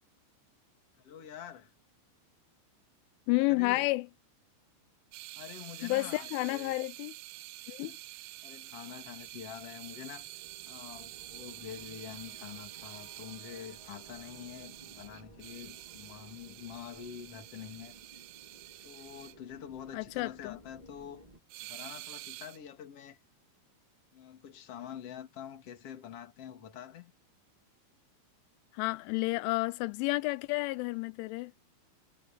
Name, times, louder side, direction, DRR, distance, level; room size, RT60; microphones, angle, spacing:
voice 1, 1.0-1.7 3.3-3.9 5.3-6.8 7.8-8.0 8.4-10.3 10.7-18.0 18.8-21.2 21.6-23.2 24.1-27.1, left 9 dB, 40° left, 2.7 m, -46 dB
voice 2, 3.3-4.1 5.8-7.1 7.7-8.0 19.9-20.6 28.7-31.5, left 22 dB, 85° left, 3.0 m, -31 dB
sound 1, 5.1-19.3 21.5-22.6, right 20 dB, 90° right, 2.3 m, -48 dB
sound 2, 8.0-21.4, right 2 dB, 55° right, 0.4 m, -57 dB
omnidirectional pair, 5.5 m